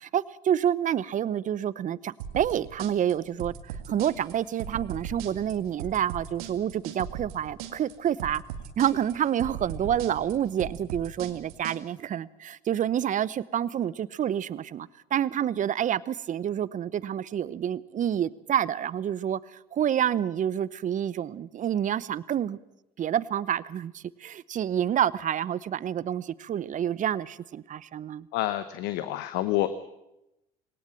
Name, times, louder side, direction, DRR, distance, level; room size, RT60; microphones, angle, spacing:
voice 1, 0.0-8.4 8.8-22.6 23.0-28.3, right 10 dB, 45° right, 0.8 m, -28 dB
sound 1, 2.2-11.8, right 8 dB, 85° right, 1.9 m, -38 dB
voice 2, 28.3-29.7, left 15 dB, 70° left, 1.0 m, -28 dB
20.0 x 18.0 x 7.6 m
hypercardioid pair, 70°, 19 cm